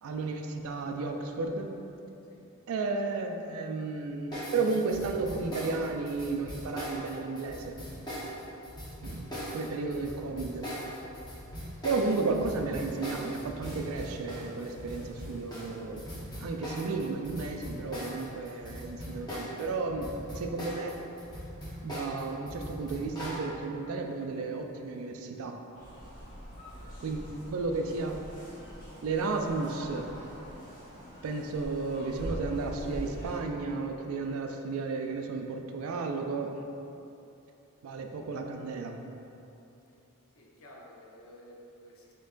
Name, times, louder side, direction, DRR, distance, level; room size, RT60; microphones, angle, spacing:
voice 1, 0.0-1.7 2.7-8.1 9.0-10.7 11.8-21.0 21.8-25.5 27.0-28.2 29.0-30.1 31.2-36.6 37.8-39.0, right 3 dB, 70° right, 4 dB, 0.4 m, -33 dB
sound 1, 4.3-19.6 19.9-23.4, equal, 20° left, 0.9 m, -40 dB
sound 2, 25.7-33.4, equal, 40° left, 1.1 m, -44 dB
voice 2, 40.3-42.1, equal, 65° left, -2 dB, 0.6 m, -53 dB
4.3 x 3.9 x 2.5 m, 2.9 s
head